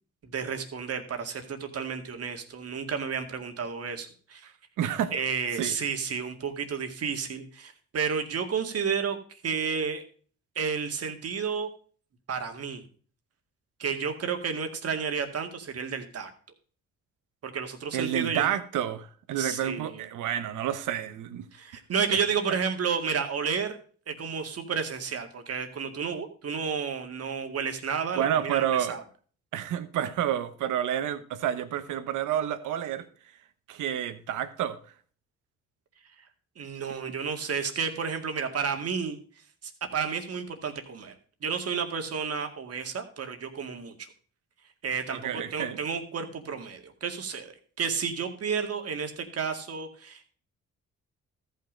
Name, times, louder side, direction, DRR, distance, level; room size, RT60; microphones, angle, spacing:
voice 1, 0.2-4.5 5.1-10.0 10.6-11.7 12.3-12.8 13.8-16.3 17.4-18.5 19.4-20.0 21.5-23.8 24.1-29.0 36.6-39.2 39.9-41.1 41.4-44.1 44.8-50.3, right 6 dB, 50° right, 2.0 m, -31 dB
voice 2, 4.8-5.1 5.6-5.7 17.9-21.5 22.1-22.2 28.1-29.0 29.5-33.0 33.7-34.8 45.1-45.8, right 10 dB, 85° right, 1.2 m, -29 dB
13.5 x 5.8 x 5.1 m
cardioid pair, 90°, 30 cm